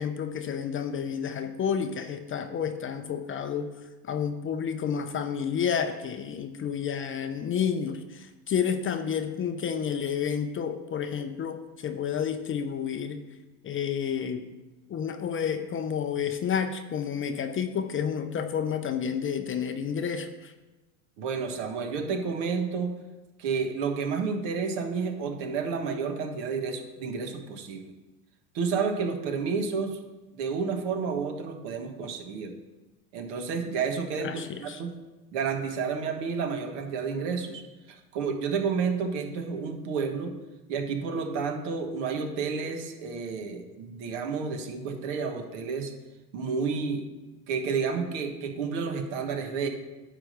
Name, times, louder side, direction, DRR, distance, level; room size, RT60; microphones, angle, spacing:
voice 1, 0.0-3.7 4.0-13.2 13.6-14.5 14.9-20.5 34.2-34.8, left 7 dB, 30° left, 7 dB, 0.5 m, -30 dB
voice 2, 21.2-22.9 23.4-27.9 28.5-30.0 30.3-32.5 33.1-34.9 35.3-40.3 40.7-45.9 46.3-47.1 47.5-49.7, right 5 dB, 65° right, 5 dB, 1.4 m, -30 dB
9.6 x 3.4 x 6.5 m, 1.1 s
hypercardioid pair, 95°, 46 cm